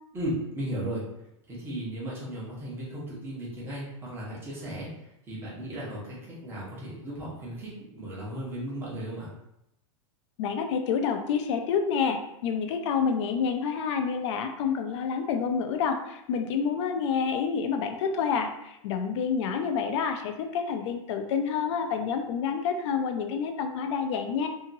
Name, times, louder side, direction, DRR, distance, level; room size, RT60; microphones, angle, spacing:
voice 1, 0.1-1.0 1.5-4.9 5.3-9.3, right 1 dB, 15° right, -7 dB, 1.0 m, -35 dB
voice 2, 10.4-24.5, left 6 dB, 60° left, 6 dB, 0.5 m, -28 dB
2.8 x 2.8 x 2.6 m, 0.84 s
supercardioid pair, 150°, 17 cm